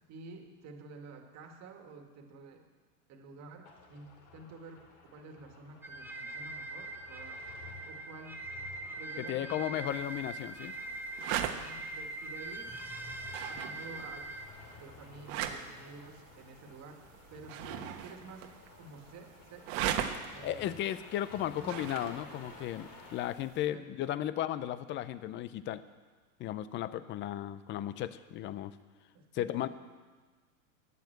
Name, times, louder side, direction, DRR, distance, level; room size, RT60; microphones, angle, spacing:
voice 1, 0.1-2.6 3.1-7.4 7.9-8.5 9.0-9.8 11.3-12.7 13.4-14.3 14.8-17.0 17.3-18.5 18.8-19.9 20.3-20.8 21.5-21.8 23.7-24.2 29.1-29.7, right 3 dB, 35° right, 4 dB, 1.9 m, -50 dB
sound 1, 3.6-23.2, left 4 dB, 60° left, 3.1 m, -55 dB
sound 2, 5.8-14.5, right 2 dB, 5° right, 0.7 m, -42 dB
voice 2, 9.2-10.7 20.4-25.8 26.4-28.7 29.3-29.7, left 12 dB, 25° left, 15 dB, 0.5 m, -35 dB
sound 3, 9.9-23.7, right 10 dB, 60° right, 1.3 m, -41 dB
12.0 x 9.5 x 7.9 m, 1.4 s
supercardioid pair, 130°, 45 cm